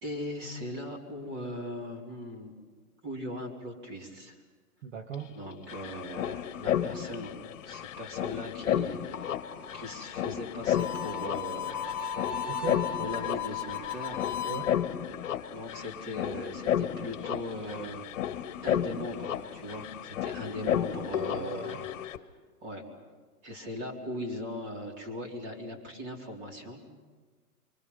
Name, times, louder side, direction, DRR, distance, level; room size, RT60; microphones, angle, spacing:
voice 1, 0.0-2.5 3.0-4.3 5.3-7.3 7.7-9.3 9.7-12.1 13.0-14.3 15.5-18.0 18.6-22.1 22.6-22.9 23.4-26.8, left 1 dB, 25° right, 0 dB, 4.1 m, -39 dB
voice 2, 4.8-5.4 12.5-12.9 14.4-14.7 21.3-21.8, right 6 dB, 50° right, 4 dB, 1.9 m, -38 dB
sound 1, 5.1-5.2 5.4-22.2, left 10 dB, 55° left, 1.4 m, -33 dB
Harmonica, 10.7-14.7, left 8 dB, 5° right, 2.2 m, -35 dB
29.5 x 25.0 x 5.6 m, 1.4 s
hypercardioid pair, 155°, 46 cm